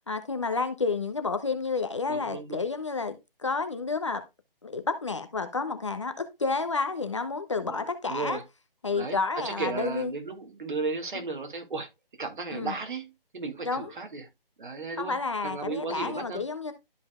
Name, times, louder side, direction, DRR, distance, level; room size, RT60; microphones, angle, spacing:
voice 1, 0.1-4.2 4.6-8.4 8.8-10.1 12.5-12.7 13.6-13.9 15.0-16.7, left 4 dB, 30° left, 0.7 m, -30 dB
voice 2, 2.1-2.6 7.6-8.4 8.9-11.9 12.2-14.3 14.6-15.2 15.4-16.4, right 4 dB, 55° right, 2.3 m, -35 dB
12.5 x 5.1 x 2.3 m
hypercardioid pair, 170°, 29 cm